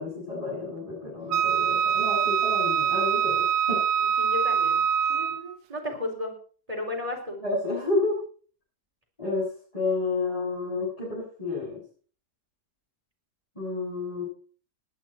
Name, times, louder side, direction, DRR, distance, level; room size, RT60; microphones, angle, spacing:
voice 1, 0.0-3.8 7.4-8.2 9.2-11.8 13.5-14.2, left 3 dB, 20° left, -9 dB, 8.2 m, -30 dB
Wind instrument woodwind instrument, 1.3-5.5, right 8 dB, 75° right, 1.3 m, -24 dB
voice 2, 4.2-4.8 5.1-6.3 6.7-7.4, left 2 dB, 20° right, 0 dB, 4.4 m, -33 dB
20.0 x 10.5 x 4.5 m, 0.42 s
omnidirectional pair, 1.8 m